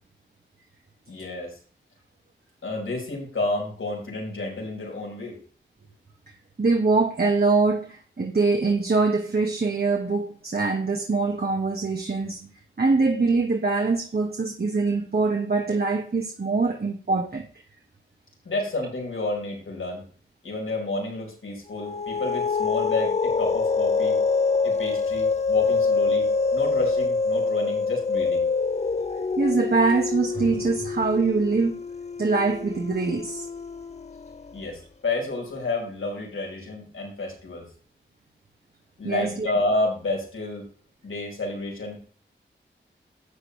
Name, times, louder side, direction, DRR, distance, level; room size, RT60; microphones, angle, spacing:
voice 1, 1.1-1.6 2.6-5.4 18.4-20.0 20.4-24.2 24.6-28.4 34.5-37.7 39.0-40.7 41.0-42.0, left 2 dB, 80° left, 4.9 m, -30 dB
voice 2, 6.6-12.5 12.8-17.5 29.4-31.8 32.2-33.5 39.0-39.5, right 3 dB, 50° right, 1.8 m, -23 dB
sound 1, 21.7-34.5, left 4 dB, 35° left, 0.7 m, -25 dB
12.0 x 7.7 x 3.4 m
cardioid pair, 45°, 20 cm